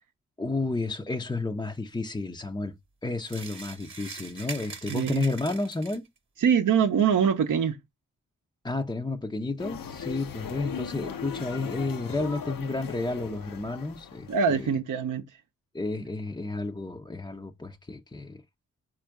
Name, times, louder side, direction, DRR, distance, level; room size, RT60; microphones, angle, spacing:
voice 1, 0.4-2.8 3.0-6.0 8.6-14.7 15.7-18.4, left 2 dB, 10° left, 0.5 m, -31 dB
sound 1, 3.2-6.2, right 4 dB, 35° right, 1.0 m, -42 dB
voice 2, 4.9-5.3 6.4-7.8 14.3-15.2, right 7 dB, 60° right, 0.6 m, -23 dB
sound 2, 9.6-14.7, left 7 dB, 70° left, 0.6 m, -38 dB
4.3 x 2.5 x 4.6 m
cardioid pair, 45°, 35 cm